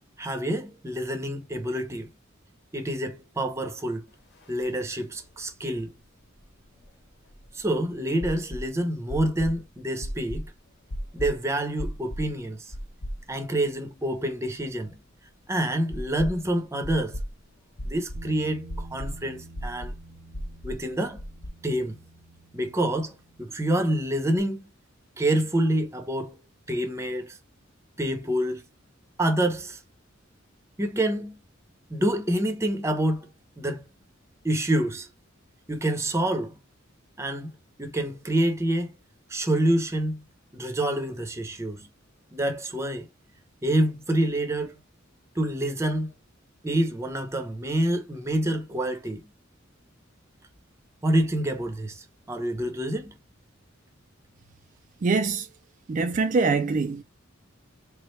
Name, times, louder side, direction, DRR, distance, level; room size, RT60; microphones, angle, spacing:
voice 1, 0.2-2.1 2.7-4.1 4.5-5.9 7.5-10.5 11.1-12.6 13.3-15.0 15.5-17.2 17.8-19.9 20.6-21.2 21.6-22.0 22.5-24.6 25.2-26.4 26.7-27.4 28.0-28.6 29.2-29.8 30.8-31.4 31.9-33.3 33.6-33.9 34.4-35.1 35.7-36.6 37.2-37.5 37.8-38.9 39.3-40.2 40.5-41.8 42.3-43.1 43.6-44.8 45.4-46.1 46.6-49.2 51.0-53.2, right 1 dB, 15° right, 0.7 m, -27 dB
sound 1, 4.4-4.5 4.7-4.8 6.4-7.6 8.2-8.7 9.1-9.6 10.0-10.5 10.9-11.3 11.8-12.3 12.7-13.5 13.8-13.9 15.9-16.5 16.8-17.3 17.8-18.3 18.7-19.2 19.6-20.0 20.3-20.8 21.2-21.5, equal, 55° left, 1.0 m, -34 dB
Bass guitar, 18.1-24.4, right 2 dB, 85° right, 0.7 m, -49 dB
voice 2, 55.0-55.5 55.9-57.0, right 4 dB, 40° right, 0.3 m, -24 dB
3.6 x 3.1 x 3.1 m
head